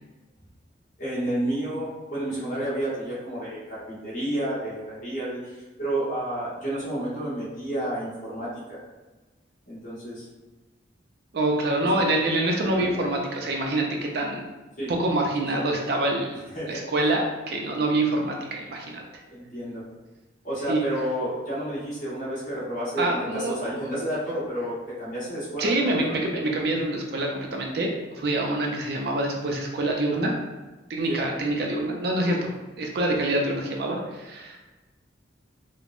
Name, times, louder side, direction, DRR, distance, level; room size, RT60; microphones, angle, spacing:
voice 1, 1.0-8.8 9.6-10.2 11.8-12.0 12.7-13.0 14.8-14.9 15.5-15.6 16.5-16.8 19.3-19.8 20.4-26.2 31.1-31.2, right 1 dB, 40° left, -9 dB, 1.1 m, -31 dB
voice 2, 11.3-14.5 14.9-16.4 16.7-19.0 20.7-20.9 23.0-23.7 25.6-30.3 30.9-34.6, right 1 dB, 55° right, 1 dB, 0.4 m, -26 dB
3.5 x 2.0 x 2.4 m, 1.2 s
head